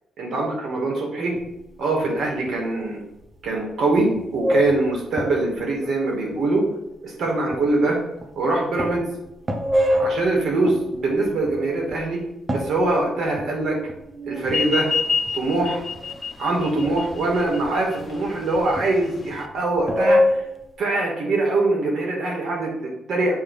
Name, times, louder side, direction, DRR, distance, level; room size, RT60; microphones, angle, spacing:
voice 1, 0.2-1.3 1.8-3.0 3.4-6.6 7.0-8.0 8.4-9.1 10.0-12.2 12.5-13.8 14.2-14.9 15.3-15.8 16.4-20.2 20.8-23.3, right 2 dB, 60° right, -1 dB, 2.4 m, -23 dB
sound 1, 1.3-2.1 2.4-2.7 3.2-3.7 4.0-5.6 6.3-6.4 7.3-7.9 8.2-8.5 8.8-12.0 12.5-15.1 15.4-16.2 16.8-17.6 18.0-19.5 19.8-20.7, left 1 dB, 25° right, 0.8 m, -26 dB
sound 2, 14.4-19.5, left 5 dB, 35° left, 0.6 m, -28 dB
7.3 x 3.1 x 5.0 m, 0.87 s
cardioid pair, 90°, 0 cm